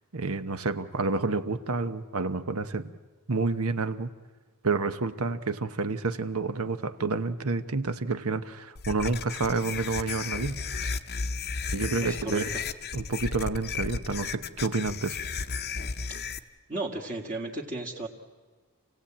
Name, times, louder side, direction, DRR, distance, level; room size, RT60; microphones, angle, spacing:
voice 1, 0.1-2.9 3.3-4.1 4.6-10.6 11.7-12.5 12.9-15.2, right 3 dB, 70° right, 11 dB, 1.0 m, -29 dB
sound 1, 8.8-16.4, left 5 dB, 45° left, 0.8 m, -34 dB
voice 2, 12.0-12.4 16.7-18.1, right 2 dB, 35° right, -4 dB, 1.9 m, -34 dB
28.0 x 17.0 x 8.7 m, 1.4 s
head